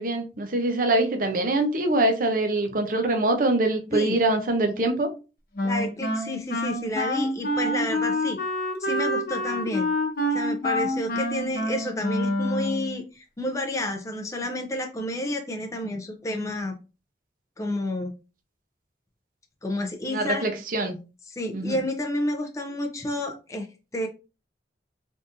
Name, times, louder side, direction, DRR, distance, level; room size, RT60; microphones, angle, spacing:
voice 1, 0.0-5.1 20.1-21.0 21.5-21.8, right 2 dB, 50° right, 0.6 m, -24 dB
Wind instrument woodwind instrument, 5.6-13.0, left 1 dB, 55° left, 0.8 m, -27 dB
voice 2, 5.6-8.4 8.8-9.9 10.3-16.7 17.6-18.1 19.6-20.5 21.3-23.7 23.9-24.1, left 1 dB, 20° left, 0.5 m, -30 dB
3.6 x 2.6 x 2.6 m
head